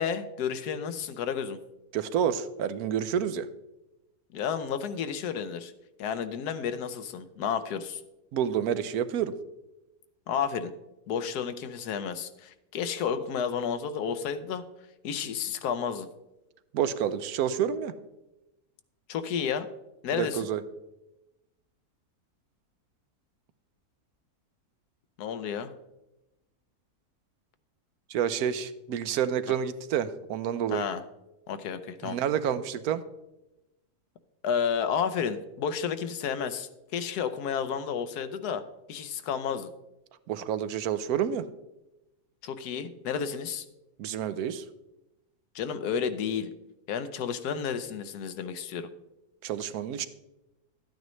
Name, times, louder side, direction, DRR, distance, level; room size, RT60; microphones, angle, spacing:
voice 1, 0.0-1.6 4.3-5.7 6.0-8.0 10.3-10.7 11.1-14.6 15.0-16.1 19.1-19.7 20.0-20.5 25.2-25.7 30.7-31.0 31.5-32.2 34.4-38.6 38.9-39.7 42.4-43.6 45.5-46.5 46.9-48.9, left 7 dB, 80° left, 11 dB, 1.3 m, -31 dB
voice 2, 1.9-3.5 8.3-9.3 16.7-17.9 20.1-20.6 28.1-30.9 32.0-33.0 40.3-41.5 44.0-44.6 49.4-50.1, right 9 dB, 75° right, 13 dB, 1.1 m, -29 dB
12.0 x 9.2 x 3.1 m, 0.95 s
omnidirectional pair, 1.7 m